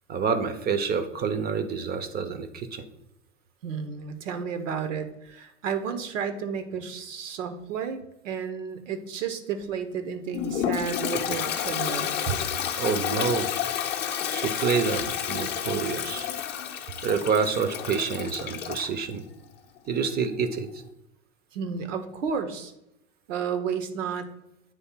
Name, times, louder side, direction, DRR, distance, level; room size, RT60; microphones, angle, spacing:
voice 1, 0.1-2.8 12.3-12.4 12.8-13.5 14.3-16.3 17.0-19.2 19.9-20.8, right 6 dB, 25° right, 10 dB, 0.6 m, -27 dB
voice 2, 3.6-12.1 21.5-22.7 23.3-24.3, right 6 dB, 70° right, 8 dB, 1.0 m, -32 dB
Toilet flush, 10.3-18.9, left 9 dB, 25° left, 0.7 m, -30 dB
8.8 x 3.2 x 4.5 m, 0.85 s
hypercardioid pair, 95°, 39 cm